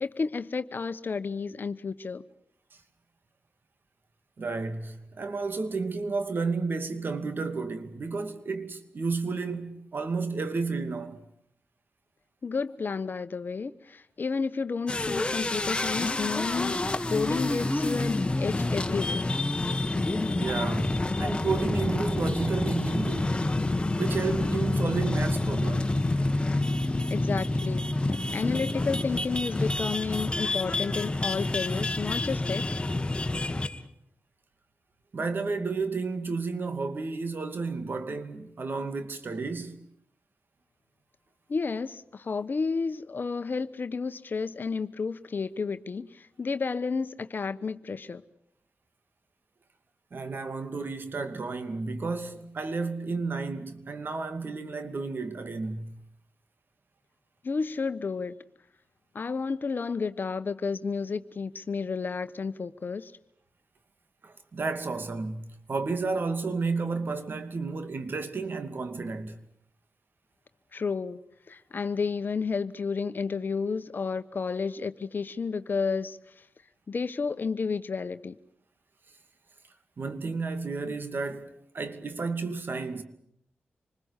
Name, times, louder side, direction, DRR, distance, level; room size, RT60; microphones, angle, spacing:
voice 1, 0.0-2.2 12.4-19.3 27.1-27.8 28.3-32.6 41.5-48.2 57.4-58.4 59.1-63.1 70.7-71.2 71.5-76.2 76.9-78.4, left 5 dB, 55° left, 1.1 m, -31 dB
voice 2, 4.4-11.3 20.4-23.4 24.0-26.0 35.1-39.8 50.1-56.0 64.2-69.4 80.0-83.0, right 4 dB, 60° right, 2.5 m, -32 dB
sound 1, 14.9-33.8, left 2 dB, 25° left, 1.8 m, -28 dB
27.0 x 20.5 x 8.3 m
cardioid pair, 50°, 4 cm